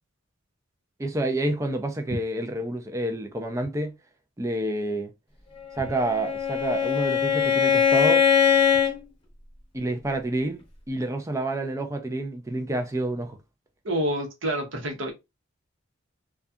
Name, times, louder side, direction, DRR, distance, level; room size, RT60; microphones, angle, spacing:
voice 1, 1.0-3.9 4.4-5.1 5.8-8.3 9.7-10.6 10.9-13.4, right 1 dB, 15° right, 0.4 m, -28 dB
Bowed string instrument, 5.8-9.0, left 7 dB, 25° left, 0.8 m, -21 dB
voice 2, 13.8-15.1, right 1 dB, 65° right, 0.8 m, -28 dB
2.6 x 2.3 x 2.3 m
head